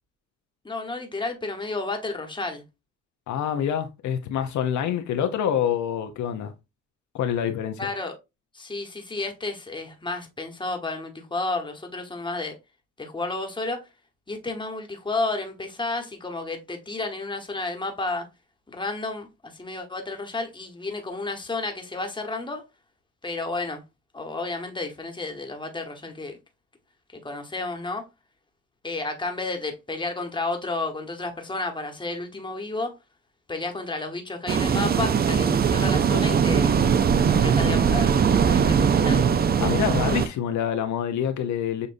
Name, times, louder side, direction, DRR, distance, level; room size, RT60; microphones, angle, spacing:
voice 1, 0.6-2.6 7.8-8.2 8.5-12.6 13.0-13.8 14.3-18.3 18.7-22.6 23.2-23.8 24.1-26.4 27.2-28.0 28.8-32.9 33.5-36.8 37.3-39.2, left 3 dB, 15° left, 1.1 m, -31 dB
voice 2, 3.3-6.5 7.1-7.8 39.6-41.9, left 9 dB, 70° left, 0.7 m, -26 dB
sound 1, 34.5-40.3, right 7 dB, 30° right, 0.4 m, -20 dB
6.7 x 2.5 x 2.5 m
cardioid pair, 90°, 30 cm